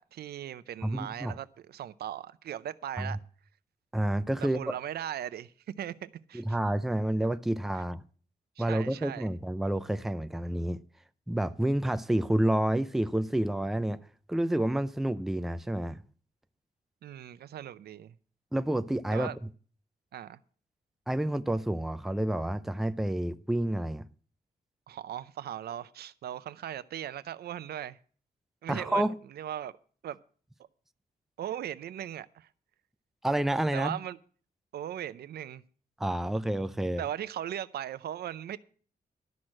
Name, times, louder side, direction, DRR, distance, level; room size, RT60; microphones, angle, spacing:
voice 1, 0.1-3.2 4.4-6.6 8.6-9.3 17.0-18.1 19.1-19.4 20.1-20.4 24.9-28.0 28.6-29.7 30.0-30.2 31.4-32.5 33.7-34.2 34.7-35.6 37.0-38.6, right 11 dB, 85° right, 0.6 m, -38 dB
voice 2, 0.8-1.4 3.0-3.2 3.9-4.8 6.3-8.0 8.6-10.8 11.3-14.0 14.3-16.0 18.5-19.3 21.1-24.1 28.7-29.1 33.2-34.0 36.0-37.0, right 1 dB, ahead, 0.4 m, -29 dB
12.0 x 6.3 x 7.5 m
wide cardioid pair, 150°, 16 cm